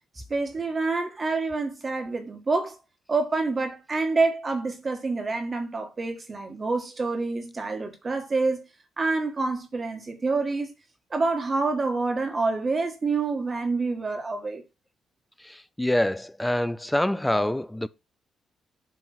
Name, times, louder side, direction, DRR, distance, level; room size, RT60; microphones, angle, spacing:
voice 1, 0.3-2.8 3.1-8.6 9.0-10.7 11.1-14.6, right 3 dB, 30° right, 1.6 m, -27 dB
voice 2, 15.4-17.9, left 1 dB, 5° left, 0.4 m, -26 dB
7.5 x 3.6 x 4.4 m
cardioid pair, 90°, 0 cm